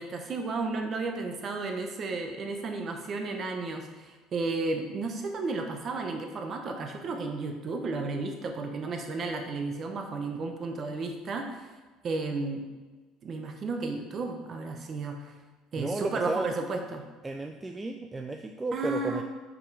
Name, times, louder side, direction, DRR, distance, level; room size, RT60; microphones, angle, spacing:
voice 1, 0.0-11.7 12.0-12.7 13.2-15.3 15.7-17.0 18.7-19.2, right 3 dB, 35° right, 4 dB, 0.9 m, -33 dB
voice 2, 15.8-16.5 17.2-19.2, right 2 dB, 10° right, 4 dB, 0.3 m, -33 dB
6.0 x 5.1 x 4.7 m, 1.3 s
cardioid pair, 160°, 0 cm